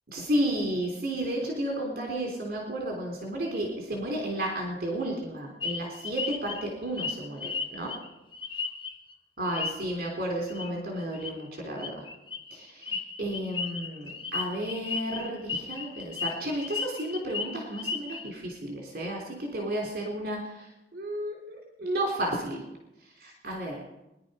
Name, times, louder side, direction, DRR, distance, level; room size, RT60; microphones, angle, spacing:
voice 1, 0.1-8.0 9.4-12.0 12.5-22.6 23.2-23.8, right 1 dB, 55° right, 1 dB, 3.3 m, -32 dB
sound 1, 5.6-9.1 9.4-10.0 10.5-10.7 11.0-11.3 11.8-18.3, left 5 dB, 30° left, 1.2 m, -35 dB
22.5 x 11.0 x 5.5 m, 0.92 s
head